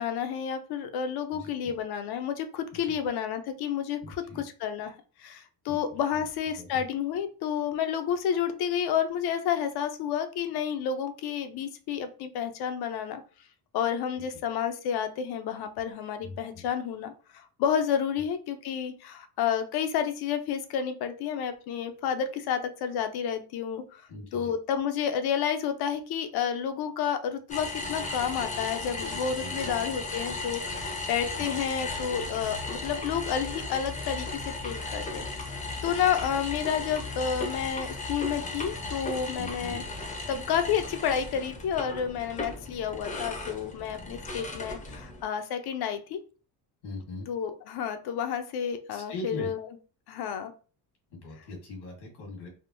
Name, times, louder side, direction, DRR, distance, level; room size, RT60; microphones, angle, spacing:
voice 1, 0.0-13.2 13.7-24.0 24.3-35.6 35.8-39.8 40.3-46.2 47.3-49.7 50.1-50.5, left 8 dB, 65° left, 8 dB, 0.6 m, -30 dB
voice 2, 1.3-1.7 2.7-3.0 4.0-4.4 5.7-5.8 6.1-6.2 6.6-6.8 14.2-14.3 16.2-16.7 24.1-24.5 29.4-29.7 31.4-31.5 39.3-39.8 46.8-47.3 48.9-49.5 51.1-52.5, left 2 dB, 85° left, 0 dB, 1.5 m, -41 dB
sound 1, 27.5-45.2, left 2 dB, 20° left, 0.6 m, -36 dB
3.5 x 2.0 x 2.5 m, 0.37 s
cardioid pair, 115°, 41 cm